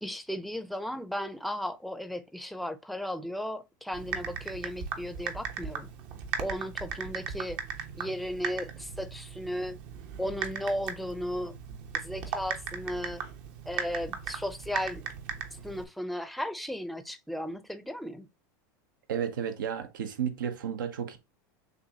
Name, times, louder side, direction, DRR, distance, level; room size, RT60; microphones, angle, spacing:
voice 1, 0.0-5.9 6.4-7.6 8.0-9.8 10.2-11.6 11.9-13.2 13.7-15.0 15.6-18.3, equal, ahead, 0.5 m, -35 dB
Typing, 3.9-15.8, right 7 dB, 65° right, 1.0 m, -38 dB
voice 2, 19.1-21.2, right 8 dB, 90° right, 0.8 m, -32 dB
6.7 x 2.6 x 2.8 m
supercardioid pair, 115°, 10 cm